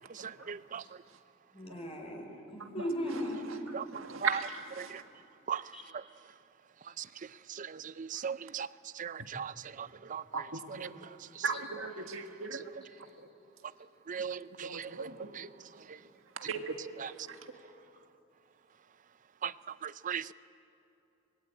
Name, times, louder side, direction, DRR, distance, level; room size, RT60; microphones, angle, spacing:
voice 1, 0.2-0.5 3.9-4.9 10.3-10.9 11.4-12.6 14.6-15.3 16.4-16.7, right 5 dB, 80° right, 1.8 m, -37 dB
voice 2, 1.5-3.4 5.7-5.9, equal, 30° left, 4.9 m, -37 dB
voice 3, 8.2-8.7 9.0-9.5 10.1-10.2 14.1-14.4 20.1-20.3, right 7 dB, 40° right, 0.5 m, -35 dB
26.0 x 21.5 x 8.9 m
head